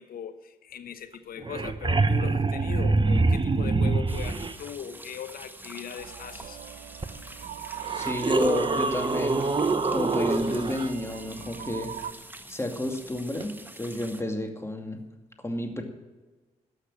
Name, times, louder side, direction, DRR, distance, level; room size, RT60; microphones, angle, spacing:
voice 1, 0.0-6.6, left 7 dB, 65° left, 10 dB, 1.0 m, -39 dB
sound 1, 1.1-1.2 1.4-4.5 7.0-7.1 7.8-10.9 13.4-13.5, right 3 dB, 30° right, 1.0 m, -25 dB
sound 2, 4.1-14.2, right 1 dB, 10° right, 1.3 m, -46 dB
sound 3, 6.0-12.1, right 10 dB, 65° right, 0.6 m, -39 dB
voice 2, 7.9-9.6 9.9-11.9 12.5-15.0 15.4-15.8, left 1 dB, 15° left, 4 dB, 2.4 m, -31 dB
12.5 x 6.6 x 8.6 m, 1.3 s
hypercardioid pair, 40°, 16 cm